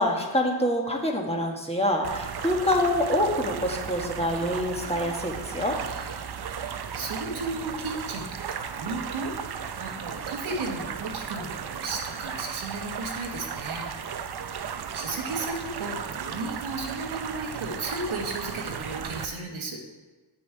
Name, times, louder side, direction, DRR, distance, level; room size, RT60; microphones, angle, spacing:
voice 1, 0.0-5.8, left 1 dB, 10° left, 0 dB, 1.4 m, -26 dB
sound 1, 2.0-19.3, right 7 dB, 50° right, 0.7 m, -35 dB
voice 2, 5.9-13.9 14.9-19.8, right 3 dB, 75° right, 0 dB, 1.6 m, -35 dB
8.4 x 6.2 x 4.7 m, 1.2 s
cardioid pair, 60°, 49 cm